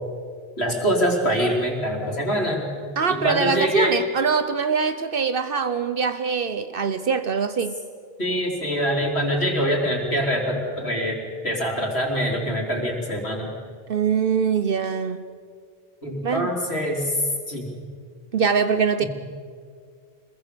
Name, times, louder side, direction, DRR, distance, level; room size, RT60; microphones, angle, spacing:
voice 1, 0.6-2.7 3.1-4.0 8.2-13.5 16.0-17.1 17.5-17.7 19.0-19.1, equal, 90° left, 0 dB, 3.9 m, -24 dB
voice 2, 3.0-7.8 13.9-15.2 16.2-16.5 18.3-19.0, right 6 dB, 60° right, 11 dB, 1.0 m, -23 dB
26.0 x 21.5 x 6.8 m, 2.1 s
omnidirectional pair, 1.1 m